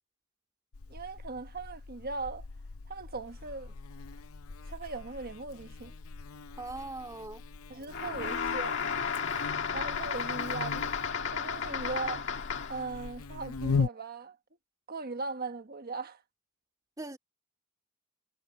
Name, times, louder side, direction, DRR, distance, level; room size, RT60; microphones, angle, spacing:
Buzz, 0.7-13.9, left 5 dB, 80° left, 0.7 m, -39 dB
voice 1, 0.9-2.4 2.9-3.7 4.7-5.9 7.7-8.7 9.7-10.9 11.3-12.3 12.7-14.4 14.9-16.2, right 3 dB, 45° right, 1.4 m, -39 dB
voice 2, 6.6-7.4 17.0-17.2, right 2 dB, 15° right, 2.4 m, -40 dB
sound 1, 7.9-12.9, left 6 dB, 60° left, 1.7 m, -33 dB
head